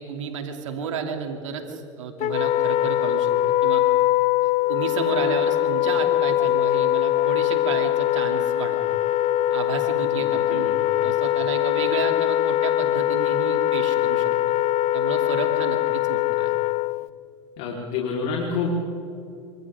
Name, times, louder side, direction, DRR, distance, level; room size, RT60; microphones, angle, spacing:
voice 1, 0.0-3.3 3.6-3.8 4.4-8.8 9.5-10.7 11.0-14.5 14.9-16.5, right 6 dB, 85° right, 3 dB, 2.9 m, -32 dB
Wind instrument woodwind instrument, 2.2-17.1, left 13 dB, 45° left, 0.6 m, -22 dB
voice 2, 10.2-11.0 17.6-18.7, left 5 dB, 60° left, -4 dB, 4.2 m, -29 dB
28.5 x 26.0 x 3.8 m, 2.7 s
hypercardioid pair, 95°, 16 cm